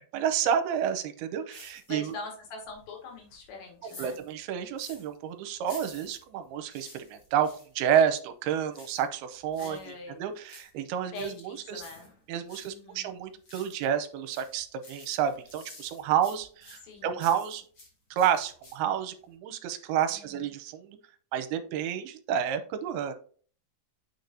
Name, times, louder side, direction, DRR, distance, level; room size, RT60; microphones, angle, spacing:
voice 1, 0.0-2.1 4.0-7.5 7.8-11.8 12.3-17.6 18.1-20.9 21.3-23.1, right 9 dB, 80° right, 9 dB, 2.5 m, -30 dB
voice 2, 1.5-4.2 9.6-10.2 11.1-12.1 12.7-13.1 16.8-17.2 20.1-20.5, left 3 dB, 85° left, 1 dB, 4.1 m, -43 dB
sound 1, 1.5-2.2 2.6-5.1 5.6-7.7 8.7-9.9 10.3-12.8 13.1-13.9 14.3-17.9 18.2-19.0 19.3-19.4, left 2 dB, 35° left, 2.9 m, -51 dB
8.2 x 6.4 x 2.7 m, 0.43 s
omnidirectional pair, 4.8 m